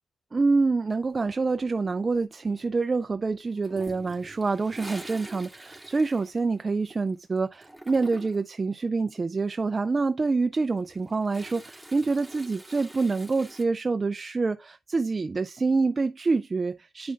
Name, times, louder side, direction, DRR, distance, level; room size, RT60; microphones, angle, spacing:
voice 1, 0.3-17.1, right 3 dB, 40° right, 0.4 m, -26 dB
Toilet flush, 3.6-7.1 7.4-8.5 10.6-13.6, right 1 dB, ahead, 2.4 m, -45 dB
9.5 x 4.8 x 2.4 m
supercardioid pair, 50°, 0 cm